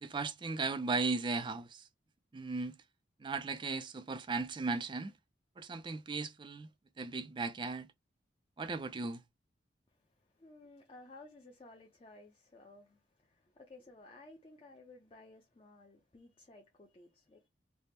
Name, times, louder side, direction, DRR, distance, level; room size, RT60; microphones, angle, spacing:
voice 1, 0.0-1.9 2.3-2.8 3.2-5.1 5.6-6.7 7.0-7.9 8.6-9.2, right 3 dB, 25° right, 0.4 m, -36 dB
voice 2, 9.9-17.4, left 2 dB, 30° left, 0.5 m, -56 dB
3.3 x 2.0 x 4.2 m
head